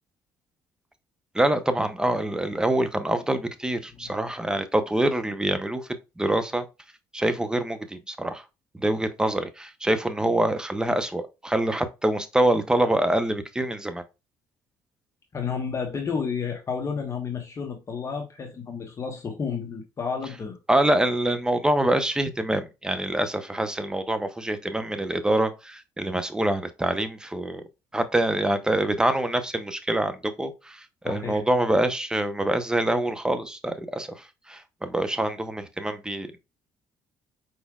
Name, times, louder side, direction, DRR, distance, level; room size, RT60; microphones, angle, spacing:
voice 1, 1.3-5.9 6.2-6.6 7.1-8.4 8.7-14.0 20.7-27.6 27.9-36.4, right 1 dB, 10° right, 0.8 m, -25 dB
voice 2, 15.3-20.6 31.0-31.4, left 6 dB, 35° left, 1.1 m, -31 dB
4.9 x 4.3 x 2.3 m
cardioid pair, 90°, 8 cm